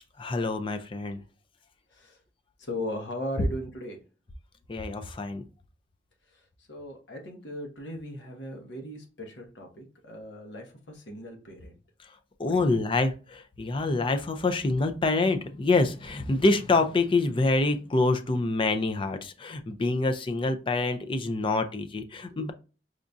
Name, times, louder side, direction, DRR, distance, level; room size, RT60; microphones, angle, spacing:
voice 1, 0.2-1.2 4.7-5.4 12.4-22.5, left 3 dB, 30° left, 8 dB, 0.4 m, -26 dB
voice 2, 2.6-4.0 6.3-6.4 6.7-11.8 12.4-12.6 22.3-22.5, equal, 70° left, 2 dB, 1.0 m, -38 dB
4.9 x 2.6 x 2.3 m, 0.34 s
head